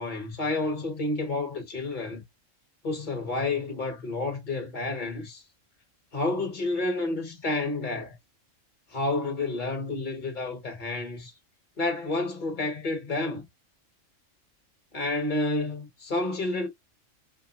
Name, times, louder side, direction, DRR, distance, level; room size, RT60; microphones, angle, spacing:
voice 1, 0.0-2.2 2.8-5.4 6.1-8.2 8.9-11.3 11.8-13.5 14.9-16.7, left 2 dB, 40° left, 1.2 m, -30 dB
4.5 x 2.0 x 2.9 m
omnidirectional pair, 1.3 m